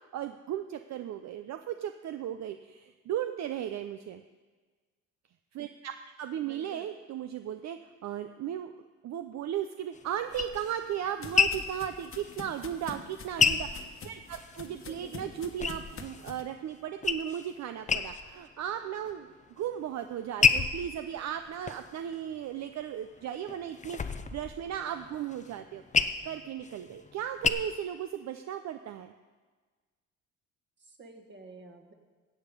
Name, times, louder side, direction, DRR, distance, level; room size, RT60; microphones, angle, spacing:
voice 1, 0.1-4.2 5.5-8.7 9.0-25.8 26.2-29.1, right 10 dB, 65° right, 8 dB, 0.6 m, -36 dB
voice 2, 6.4-6.9 14.7-15.3 30.8-31.9, right 2 dB, 40° right, 4 dB, 1.8 m, -50 dB
sound 1, 9.9-14.7 15.0-16.3 16.7-17.5 17.8-18.5 18.9-19.5 20.0-22.7 23.2-27.5, left 6 dB, 25° left, 0.6 m, -30 dB
sound 2, 10.3-16.4, left 5 dB, 45° left, 1.2 m, -46 dB
15.0 x 8.2 x 5.2 m, 1.4 s
cardioid pair, 90°, 30 cm